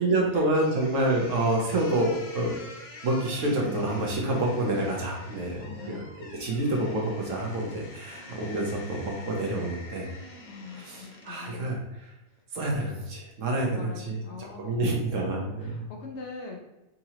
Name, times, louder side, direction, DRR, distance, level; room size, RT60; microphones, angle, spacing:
voice 1, 0.0-2.5 3.0-10.1 10.7-12.1 12.5-15.9, right 1 dB, 65° right, -1 dB, 1.2 m, -28 dB
sound 1, 0.5-11.6, left 2 dB, 40° left, 0.5 m, -46 dB
voice 2, 5.6-6.2 10.5-11.8 13.7-14.9 15.3-16.6, left 4 dB, 65° left, 1 dB, 0.9 m, -43 dB
3.7 x 2.9 x 2.9 m, 1.0 s
omnidirectional pair, 1.4 m